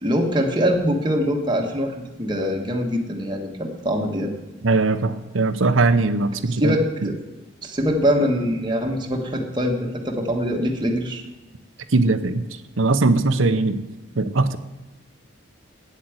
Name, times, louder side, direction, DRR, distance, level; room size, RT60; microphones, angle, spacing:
voice 1, 0.0-4.3 6.6-7.2 7.6-11.2, equal, 25° right, 1 dB, 1.3 m, -23 dB
voice 2, 4.6-6.7 11.9-12.4 12.8-13.8 14.2-14.6, right 3 dB, 75° right, 12 dB, 0.8 m, -20 dB
9.2 x 8.4 x 7.9 m, 1.1 s
head